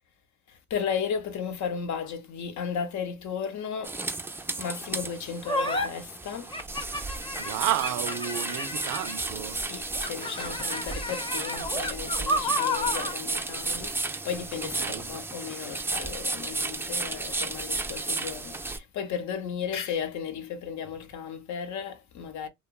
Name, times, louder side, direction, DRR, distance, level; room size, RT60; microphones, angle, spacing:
voice 1, 0.5-4.0 4.6-6.6 9.5-22.5, left 7 dB, 70° left, 0.7 m, -35 dB
sound 1, 3.8-18.8, right 3 dB, 10° right, 0.3 m, -33 dB
sound 2, 5.5-5.9 6.5-9.3 9.9-13.2, left 1 dB, 15° left, 0.7 m, -31 dB
voice 2, 7.4-9.6 14.8-15.0, right 12 dB, 80° right, 0.5 m, -31 dB
2.8 x 2.2 x 2.3 m
cardioid pair, 90°, 30 cm